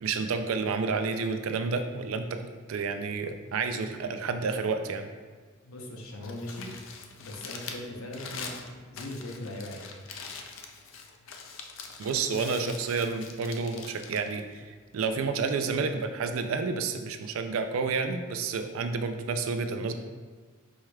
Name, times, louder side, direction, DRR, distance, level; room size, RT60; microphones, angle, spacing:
voice 1, 0.0-2.4 2.7-5.1 12.0-19.9, right 4 dB, 75° right, 7 dB, 0.4 m, -30 dB
voice 2, 5.6-6.7 7.2-8.6 8.9-9.8, left 1 dB, 90° left, 1 dB, 0.7 m, -39 dB
Crumpling crinkling, 6.1-15.2, left 5 dB, 65° left, 0.4 m, -44 dB
4.7 x 4.3 x 2.3 m, 1.4 s
head